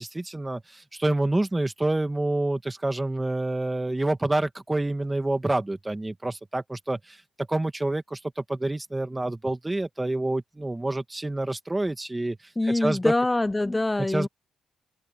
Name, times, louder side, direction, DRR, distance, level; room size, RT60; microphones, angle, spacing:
voice 1, 0.0-12.4 12.7-13.1 14.0-14.3, right 2 dB, 15° right, 1.9 m, -28 dB
voice 2, 12.6-14.3, left 2 dB, 15° left, 0.4 m, -24 dB
open air
cardioid pair, 90°, 0 cm